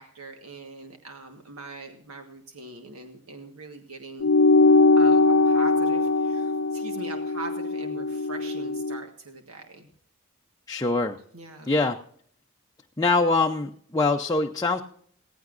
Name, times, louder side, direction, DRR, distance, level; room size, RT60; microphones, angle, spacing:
voice 1, 0.0-4.3 5.0-5.2 5.4-9.9 11.3-11.7, right 3 dB, 85° right, 4 dB, 1.5 m, -42 dB
sound 1, 4.2-9.0, left 3 dB, 75° left, 0.5 m, -21 dB
voice 2, 10.7-11.2 11.7-12.0 13.0-14.8, left 3 dB, 15° left, 2 dB, 0.6 m, -23 dB
18.0 x 15.5 x 2.6 m, 0.62 s
head